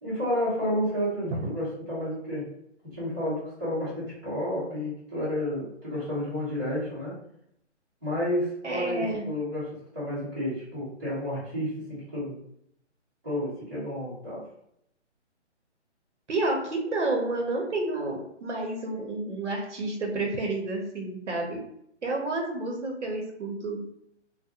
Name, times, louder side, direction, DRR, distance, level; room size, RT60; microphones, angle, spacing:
voice 1, 0.0-2.5 2.9-7.2 8.0-12.4 13.2-14.4, equal, 15° right, -14 dB, 0.9 m, -31 dB
voice 2, 8.6-9.2 16.3-21.6 22.0-23.9, right 2 dB, 75° right, 0 dB, 0.8 m, -30 dB
2.4 x 2.1 x 2.8 m, 0.74 s
hypercardioid pair, 180°, 36 cm